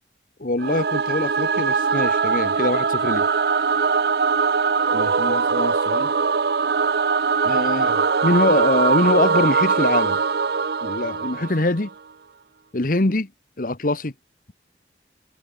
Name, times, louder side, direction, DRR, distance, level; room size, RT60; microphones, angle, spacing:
voice 1, 0.4-3.3 4.9-6.1 7.4-10.2 10.8-11.9 12.7-13.3 13.6-14.1, left 2 dB, 50° left, 1.2 m, -23 dB
Singing / Musical instrument, 0.6-11.9, right 5 dB, 60° right, 0.6 m, -21 dB
head